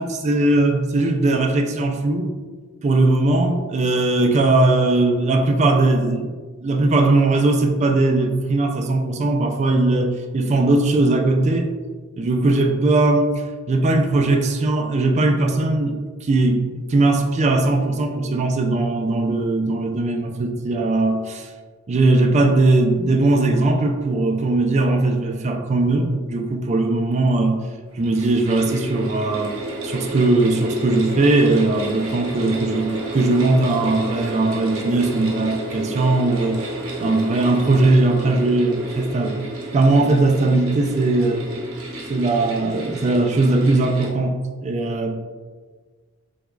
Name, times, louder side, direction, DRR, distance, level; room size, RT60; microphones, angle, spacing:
voice 1, 0.0-2.3 2.8-6.3 6.6-11.7 12.2-21.5 21.9-27.6 28.0-29.6 29.8-36.7 37.0-39.4 39.7-41.5 42.1-45.1, right 2 dB, 35° right, 3 dB, 0.3 m, -19 dB
sound 1, 27.9-44.1, right 1 dB, 75° right, 0.8 m, -31 dB
3.5 x 3.0 x 2.3 m, 1.4 s
head